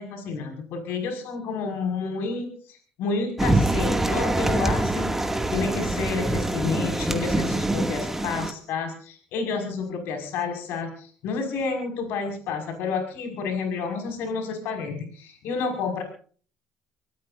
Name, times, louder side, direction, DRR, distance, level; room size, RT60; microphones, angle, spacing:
voice 1, 0.0-16.0, left 4 dB, 75° left, 5 dB, 5.7 m, -30 dB
sound 1, 3.4-8.5, right 1 dB, 10° right, 2.3 m, -24 dB
25.0 x 18.5 x 2.7 m, 0.43 s
supercardioid pair, 85°, 4 cm